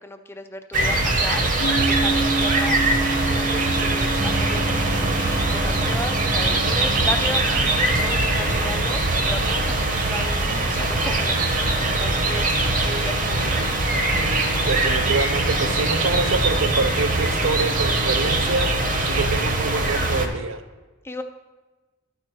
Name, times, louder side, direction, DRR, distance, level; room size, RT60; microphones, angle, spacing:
voice 1, 0.0-12.5 12.8-13.7 21.0-21.2, left 2 dB, 10° left, 7 dB, 0.4 m, -35 dB
sound 1, 0.7-20.3, right 2 dB, 40° right, 0.9 m, -22 dB
Piano, 1.6-8.8, right 3 dB, 75° left, 0.9 m, -30 dB
sound 2, 4.2-16.4 16.8-17.0 19.2-19.3, right 2 dB, 65° right, 1.3 m, -37 dB
voice 2, 14.7-18.7 19.1-20.6, right 3 dB, 85° right, 10 dB, 0.6 m, -26 dB
13.0 x 4.5 x 4.5 m, 1.2 s
head